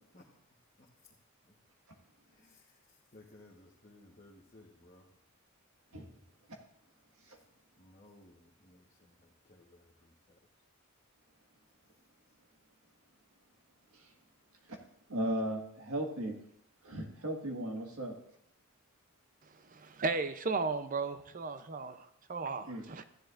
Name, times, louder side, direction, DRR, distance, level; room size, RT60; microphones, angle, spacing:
voice 1, 2.2-5.1 7.8-10.4, left 1 dB, 35° left, -3 dB, 1.2 m, -60 dB
voice 2, 15.1-16.4 16.8-18.2 22.7-22.8, right 1 dB, 90° right, 2 dB, 1.6 m, -36 dB
voice 3, 19.6-23.0, right 4 dB, 40° right, 11 dB, 0.6 m, -35 dB
15.0 x 10.5 x 2.5 m, 0.73 s
head